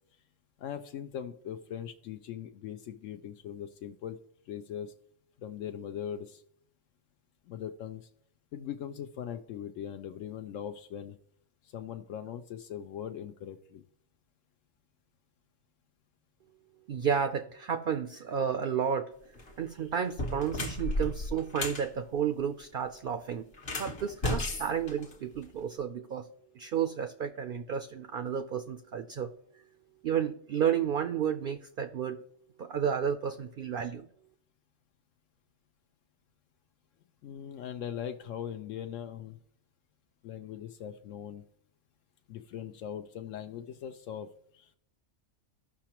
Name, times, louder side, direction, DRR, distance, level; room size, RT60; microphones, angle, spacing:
voice 1, 0.6-4.2 4.5-4.9 5.4-6.4 7.5-8.1 8.5-11.2 11.6-13.8 37.2-39.4 40.2-41.4 42.3-44.8, left 9 dB, 80° left, 7 dB, 0.9 m, -40 dB
voice 2, 16.9-19.1 19.6-26.3 26.5-29.3 30.0-32.2 32.6-34.1, right 8 dB, 60° right, 9 dB, 0.6 m, -32 dB
sound 1, 19.3-19.5 20.0-21.9 23.5-25.6, left 1 dB, 55° left, 1.2 m, -34 dB
15.0 x 5.8 x 2.9 m, 0.66 s
omnidirectional pair, 1.3 m